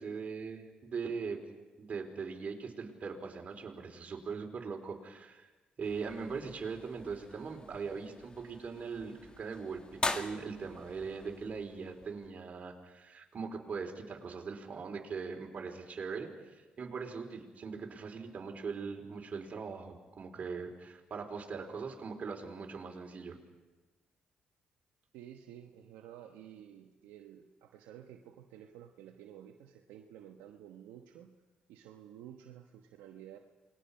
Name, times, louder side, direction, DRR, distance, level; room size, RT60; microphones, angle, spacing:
voice 1, 0.0-1.4 1.8-5.5 5.8-23.4, right 5 dB, 50° right, 2 dB, 4.2 m, -41 dB
sound 1, 5.8-12.3, left 3 dB, 30° left, 1.8 m, -43 dB
voice 2, 25.1-31.3 31.7-33.4, right 10 dB, 85° right, 3 dB, 1.2 m, -52 dB
28.0 x 21.0 x 5.6 m, 1.2 s
supercardioid pair, 60°, 3 cm